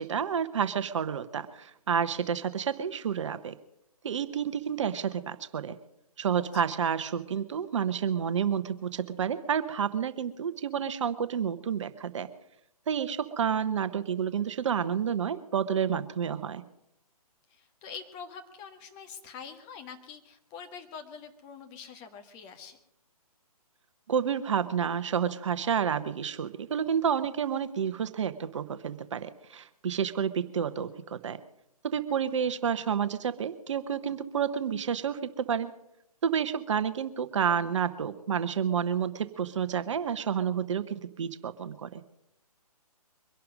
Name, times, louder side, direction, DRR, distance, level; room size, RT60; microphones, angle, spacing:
voice 1, 0.0-3.5 4.0-5.8 6.2-12.3 12.9-16.6 24.1-31.4 31.8-35.7 36.2-42.0, right 7 dB, 50° right, 12 dB, 1.0 m, -30 dB
voice 2, 17.5-22.8 32.4-32.5, left 6 dB, 20° left, 6 dB, 1.5 m, -45 dB
23.5 x 11.5 x 5.2 m, 0.79 s
figure-of-eight pair, 135°, 20 cm